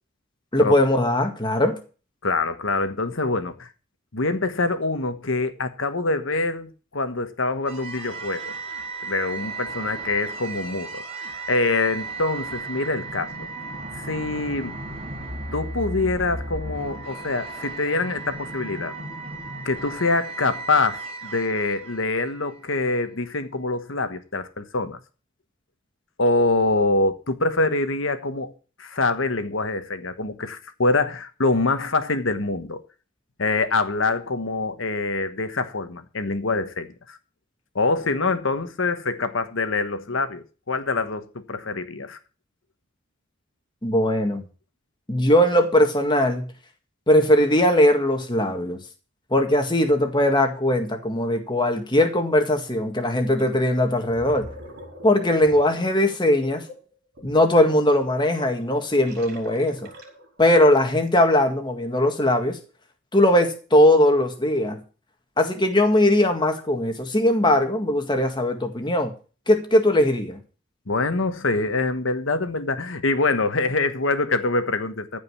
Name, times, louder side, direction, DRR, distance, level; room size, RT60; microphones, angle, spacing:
voice 1, 0.5-1.8 43.8-44.5 45.1-46.5 47.1-48.8 49.3-54.5 55.0-56.6 57.2-59.9 60.4-62.6 63.1-64.8 65.4-69.1 69.5-70.4, left 1 dB, 20° left, 1.9 m, -20 dB
voice 2, 2.2-3.7 4.1-8.5 9.0-11.0 11.5-13.5 13.9-14.7 15.5-18.9 19.6-25.0 26.2-28.5 28.8-32.8 33.4-37.2 37.7-42.2 70.9-75.2, left 3 dB, 70° left, 1.3 m, -25 dB
sound 1, 7.7-22.8, right 3 dB, 30° right, 4.7 m, -35 dB
Gurgling, 53.4-53.6 53.9-60.4, equal, 50° right, 4.8 m, -44 dB
14.5 x 5.3 x 8.3 m
head